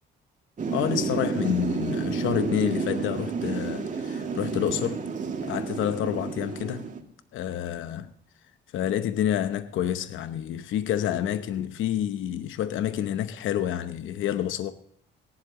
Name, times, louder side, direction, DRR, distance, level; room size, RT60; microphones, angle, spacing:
Thunder / Rain, 0.6-7.0, right 5 dB, 40° right, 2.2 m, -30 dB
voice 1, 0.7-5.0 5.4-6.9 7.3-8.1 8.7-14.7, left 10 dB, 80° left, 0.8 m, -28 dB
18.0 x 11.5 x 2.9 m
cardioid pair, 90°, 20 cm